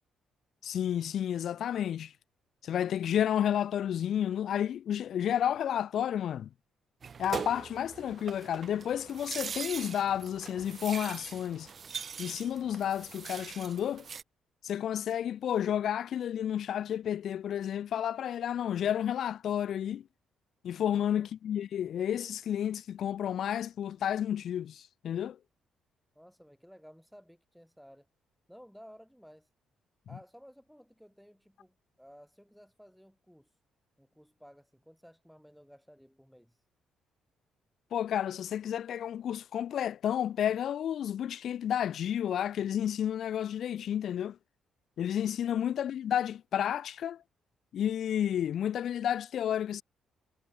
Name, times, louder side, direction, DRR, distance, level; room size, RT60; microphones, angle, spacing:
voice 1, 0.6-2.1 2.6-6.5 7.2-11.7 12.2-14.0 14.6-20.0 20.6-25.4 37.9-44.4 45.0-47.2 47.7-49.8, left 10 dB, 65° left, 1.0 m, -31 dB
sound 1, 7.0-14.2, right 6 dB, 45° right, 3.2 m, -41 dB
voice 2, 20.9-21.3 26.2-28.1 28.5-29.5 30.1-33.5 34.0-36.6, equal, ahead, 4.0 m, -55 dB
cardioid pair, 90°, 0 cm